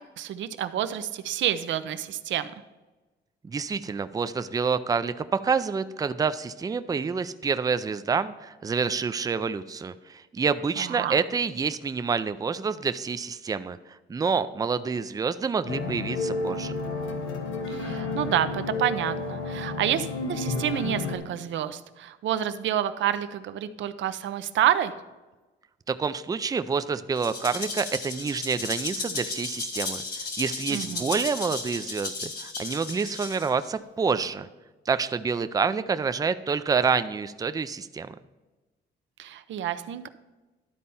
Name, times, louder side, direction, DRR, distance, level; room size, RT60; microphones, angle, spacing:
voice 1, 0.0-2.5 10.8-11.2 17.7-24.9 30.7-31.1 39.2-40.1, right 10 dB, 70° right, 12 dB, 0.6 m, -28 dB
voice 2, 3.4-16.7 25.9-34.5 34.9-38.1, right 5 dB, 20° right, 12 dB, 0.4 m, -28 dB
sound 1, 15.7-21.2, left 3 dB, 80° left, 1.1 m, -31 dB
Rattle (instrument), 27.1-33.7, left 3 dB, 55° left, 1.8 m, -34 dB
12.0 x 4.2 x 5.4 m, 1.2 s
cardioid pair, 90°, 20 cm